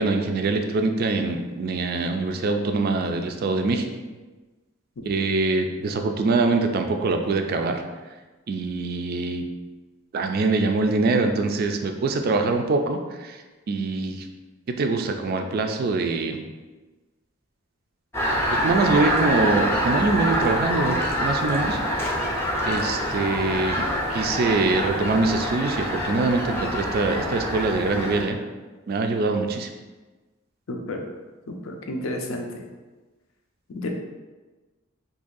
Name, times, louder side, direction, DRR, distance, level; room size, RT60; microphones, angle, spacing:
voice 1, 0.0-3.9 5.1-7.8 8.5-9.4 10.1-13.4 13.7-14.3 14.7-16.4 18.5-22.2 22.7-28.4 28.9-29.7, right 3 dB, 45° right, 5 dB, 0.3 m, -24 dB
sound 1, 18.1-28.2, equal, 10° left, 0.5 m, -26 dB
voice 2, 30.7-31.0 31.5-32.6 33.7-33.9, left 1 dB, 75° left, 2 dB, 0.5 m, -31 dB
2.7 x 2.6 x 3.8 m, 1.2 s
head